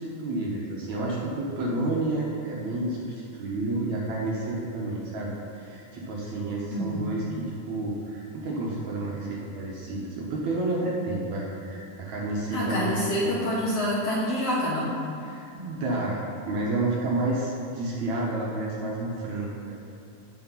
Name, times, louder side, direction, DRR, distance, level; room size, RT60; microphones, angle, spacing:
voice 1, 0.0-13.4 15.2-19.7, right 2 dB, 65° right, -4 dB, 2.1 m, -30 dB
voice 2, 6.7-7.2 12.5-14.9, equal, 65° left, -6 dB, 1.7 m, -27 dB
8.5 x 6.4 x 5.6 m, 2.8 s
omnidirectional pair, 4.2 m